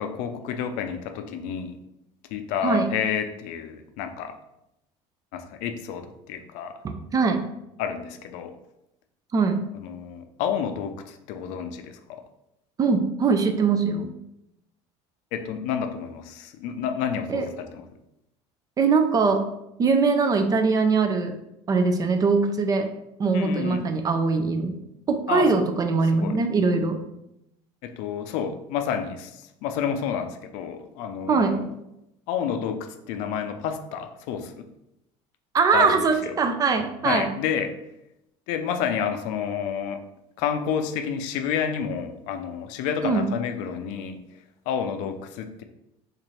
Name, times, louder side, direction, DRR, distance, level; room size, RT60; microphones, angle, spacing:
voice 1, 0.0-1.8 2.3-4.4 5.3-6.8 7.8-8.5 9.8-12.2 15.3-17.8 23.3-23.8 25.3-25.5 26.1-26.4 27.8-31.7 32.3-34.7 35.7-36.3 37.0-37.7 38.5-40.0 40.4-44.2 44.7-45.6, left 7 dB, 75° left, 7 dB, 0.4 m, -30 dB
voice 2, 6.8-7.4 9.3-9.7 12.8-14.1 17.3-17.4 18.8-19.4 19.8-21.4 21.7-22.9 23.2-24.7 25.1-27.0 31.3-31.5 35.5-37.3 43.0-43.3, right 4 dB, 30° right, 6 dB, 0.4 m, -22 dB
4.0 x 2.5 x 3.1 m, 0.85 s
cardioid pair, 120°, 13 cm